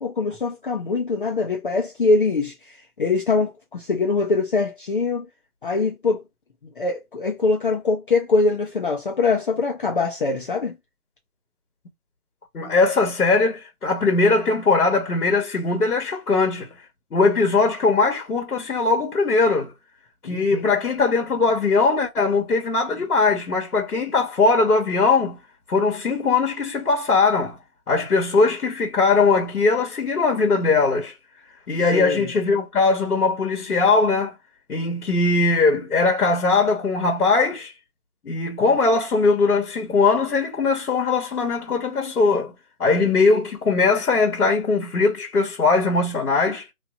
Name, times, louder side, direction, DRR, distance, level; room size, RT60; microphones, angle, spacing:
voice 1, 0.0-5.3 5.6-6.2 6.8-10.8 20.2-20.7 31.9-32.3 38.6-38.7, left 3 dB, 35° left, 0.6 m, -23 dB
voice 2, 12.5-16.7 17.1-19.7 20.2-25.4 25.7-27.6 27.9-31.1 31.7-34.3 34.7-37.7 38.2-42.5 42.8-46.7, left 4 dB, 80° left, 1.3 m, -20 dB
2.9 x 2.8 x 2.4 m
figure-of-eight pair, 150°, 44 cm